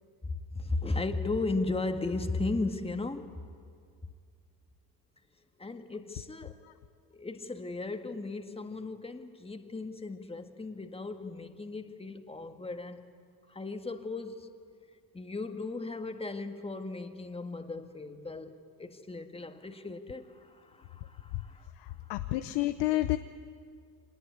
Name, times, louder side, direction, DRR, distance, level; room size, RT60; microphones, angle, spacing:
voice 1, 0.2-3.3 5.6-6.6 7.1-13.0 13.5-14.5 15.1-21.7 22.0-22.1, left 3 dB, 15° left, 1.8 m, -36 dB
voice 2, 21.8-23.2, left 16 dB, 85° left, 0.8 m, -30 dB
25.0 x 20.0 x 9.7 m
cardioid pair, 85°, 40 cm